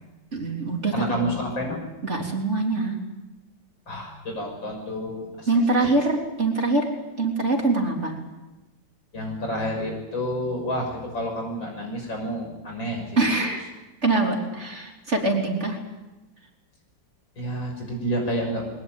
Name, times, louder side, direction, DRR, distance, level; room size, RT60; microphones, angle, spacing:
voice 1, 0.3-1.3 2.0-3.0 5.5-6.9 7.2-8.2 13.2-13.7 14.0-15.8, right 2 dB, 35° right, 1 dB, 3.8 m, -24 dB
voice 2, 0.9-1.8 3.9-5.5 9.1-13.1 13.3-13.5 17.4-18.7, equal, 85° left, 2 dB, 7.1 m, -29 dB
21.5 x 19.5 x 9.0 m, 1.1 s
omnidirectional pair, 2.0 m